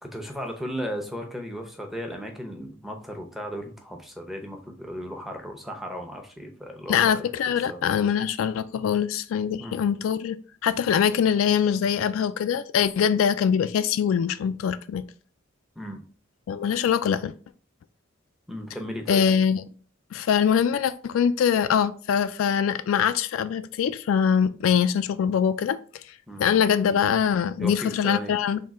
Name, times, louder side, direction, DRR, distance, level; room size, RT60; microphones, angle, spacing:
voice 1, 0.0-7.8 9.6-9.8 15.8-16.0 18.5-19.2 26.3-26.5 27.6-28.3, equal, ahead, 0.6 m, -36 dB
voice 2, 6.9-10.4 10.6-15.0 16.5-17.3 19.1-19.6 20.1-25.8 26.4-28.6, left 7 dB, 80° left, 0.3 m, -23 dB
3.6 x 2.8 x 4.1 m
head